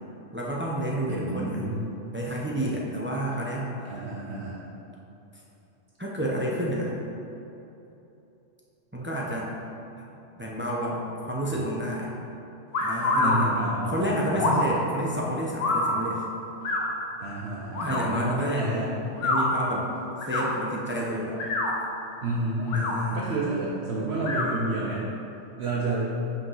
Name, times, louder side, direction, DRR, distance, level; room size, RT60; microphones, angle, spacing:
voice 1, 0.3-1.7 2.1-3.7 6.0-6.9 8.9-9.5 10.0-10.1 10.4-12.1 12.8-16.2 17.8-18.9 19.2-19.9 20.3-21.4 22.7-23.2, right 1 dB, 10° right, -4 dB, 0.7 m, -30 dB
voice 2, 1.1-1.9 3.8-4.6 13.2-14.9 17.2-18.9 22.2-25.0 25.6-26.1, right 2 dB, 60° right, -5 dB, 1.1 m, -30 dB
sound 1, 12.7-13.4 14.3-14.7 15.6-15.9 16.6-16.8 17.7-18.0 19.1-19.4 20.2-20.5 21.3-21.7 22.6-22.9 24.2-24.5, left 2 dB, 80° left, 1.3 m, -26 dB
5.7 x 5.2 x 5.6 m, 3.0 s
omnidirectional pair, 1.3 m